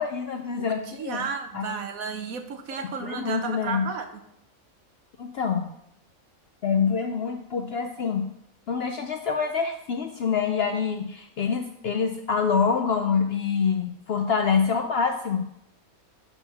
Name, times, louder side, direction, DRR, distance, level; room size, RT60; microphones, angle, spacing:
voice 1, 0.0-1.2 1.5-1.8 2.8-3.8 5.2-5.7 6.6-8.3 8.7-15.4, left 6 dB, 65° left, 5 dB, 0.6 m, -26 dB
voice 2, 0.6-4.1, right 5 dB, 75° right, 6 dB, 1.3 m, -33 dB
5.8 x 5.5 x 5.7 m, 0.76 s
omnidirectional pair, 1.5 m